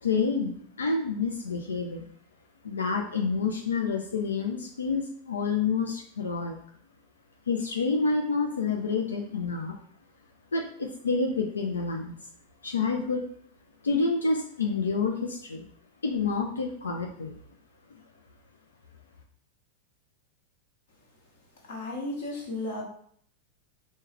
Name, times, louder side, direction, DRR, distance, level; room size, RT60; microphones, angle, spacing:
voice 1, 0.0-2.1 2.6-6.6 7.5-9.8 10.5-12.2 12.6-13.2 13.8-15.7 16.0-17.3, left 4 dB, 70° left, 2 dB, 0.4 m, -28 dB
voice 2, 21.7-22.8, left 2 dB, 55° left, 0 dB, 1.4 m, -34 dB
4.5 x 2.3 x 4.5 m, 0.62 s
figure-of-eight pair, 90°, 0 cm